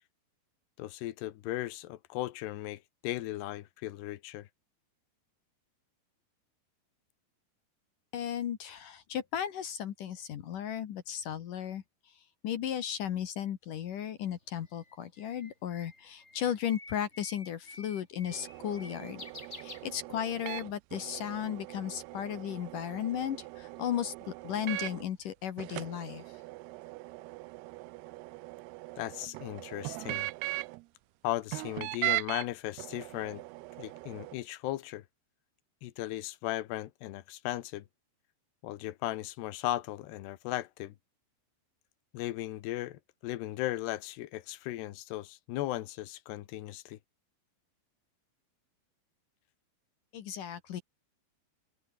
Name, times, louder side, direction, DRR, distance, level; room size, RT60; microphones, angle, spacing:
voice 1, 0.8-4.5 29.0-30.3 31.2-33.4 33.8-35.0 35.8-37.9 38.6-40.9 42.1-47.0, left 15 dB, 75° left, 3.3 m, -37 dB
voice 2, 8.1-24.1 24.4-26.4 50.1-50.8, left 9 dB, 60° left, 2.7 m, -35 dB
Bird, 14.2-20.5, left 2 dB, 15° left, 3.9 m, -50 dB
sound 1, 18.3-25.1 25.6-30.8 31.5-32.5 32.8-34.4, right 23 dB, 85° right, 2.4 m, -40 dB
open air
omnidirectional pair, 5.0 m